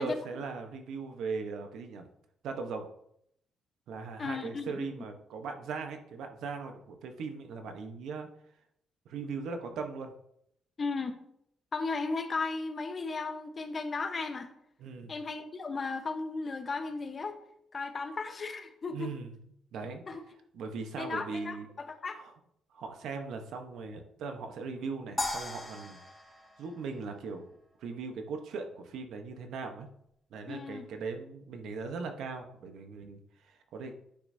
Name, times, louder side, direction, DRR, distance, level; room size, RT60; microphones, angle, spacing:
voice 1, 0.0-2.1 2.4-2.8 3.9-8.3 9.0-10.1 14.8-15.1 18.9-19.3 19.7-20.0 20.5-21.7 22.2-22.3 22.7-26.0 26.6-27.4 27.8-29.9 30.3-34.0, right 4 dB, 80° right, 5 dB, 1.0 m, -39 dB
voice 2, 4.2-4.9 10.8-11.2 11.7-14.5 15.1-17.4 17.7-19.1 20.1-20.2 21.0-22.2 30.5-30.8, left 4 dB, 40° left, 7 dB, 1.0 m, -35 dB
sound 1, 25.2-27.6, left 1 dB, 15° left, 2.8 m, -38 dB
10.0 x 6.0 x 2.7 m, 0.73 s
cardioid pair, 90°, 0 cm